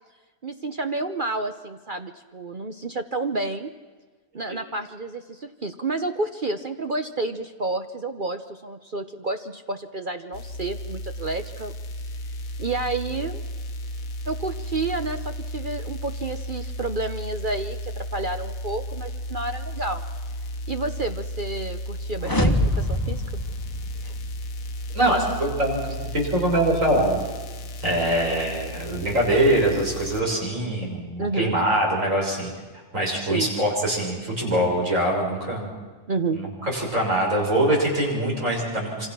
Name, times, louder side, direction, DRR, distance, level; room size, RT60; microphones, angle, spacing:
voice 1, 0.4-3.7 4.3-11.7 12.6-13.4 14.2-20.0 20.7-23.4 24.0-24.1 31.2-31.5 33.2-33.5 36.1-36.4, right 3 dB, 40° right, 7 dB, 0.9 m, -30 dB
sound 1, 10.3-30.2, equal, 70° left, 1.4 m, -34 dB
sound 2, 22.2-24.4, left 1 dB, 15° left, 1.5 m, -24 dB
voice 2, 24.9-27.2 27.8-32.5 32.9-35.7 36.3-39.1, right 1 dB, 60° right, -1 dB, 6.6 m, -23 dB
26.5 x 26.0 x 6.1 m, 1.4 s
omnidirectional pair, 1.5 m